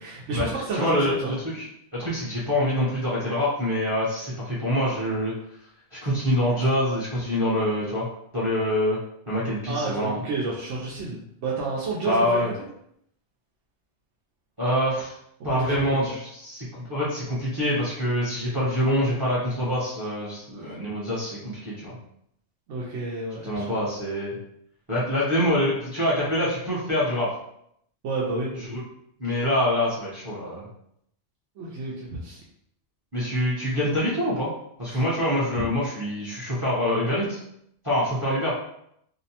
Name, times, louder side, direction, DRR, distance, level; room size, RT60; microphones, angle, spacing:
voice 1, 0.0-1.3 9.7-12.7 15.4-16.1 22.7-23.6 28.0-28.5 29.3-29.4 31.6-32.4 34.9-35.0, right 3 dB, 85° right, -5 dB, 0.9 m, -30 dB
voice 2, 0.7-1.6 1.9-5.3 6.0-8.1 8.3-9.0 9.3-10.2 12.0-12.5 14.6-15.1 15.4-21.9 23.4-24.4 24.9-27.3 28.7-28.8 29.2-30.6 33.1-34.5 34.8-37.4 37.8-38.5, equal, 25° right, -8 dB, 0.6 m, -25 dB
2.7 x 2.0 x 2.7 m, 0.73 s
omnidirectional pair, 1.2 m